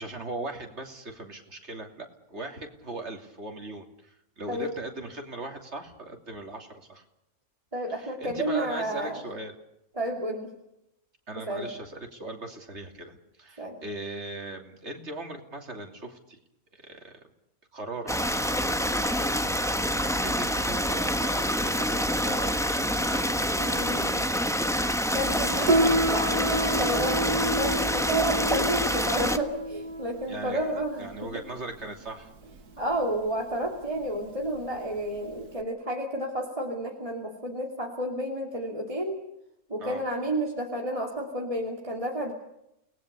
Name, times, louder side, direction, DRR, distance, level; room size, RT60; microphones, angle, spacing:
voice 1, 0.0-7.0 8.0-9.5 11.3-16.4 16.8-17.1 17.7-24.5 30.3-32.3 39.8-40.0, right 2 dB, 45° right, 3 dB, 3.3 m, -39 dB
voice 2, 7.7-9.2 9.9-10.5 11.5-11.7 13.6-13.8 23.6-24.2 25.1-31.3 32.8-39.2 39.7-42.3, right 1 dB, 20° right, 0 dB, 2.9 m, -31 dB
Stream, 18.1-29.4, equal, ahead, 1.1 m, -27 dB
Piano, 25.6-35.6, right 1 dB, 85° right, 2.2 m, -30 dB
29.0 x 19.5 x 6.9 m, 0.83 s
omnidirectional pair, 1.6 m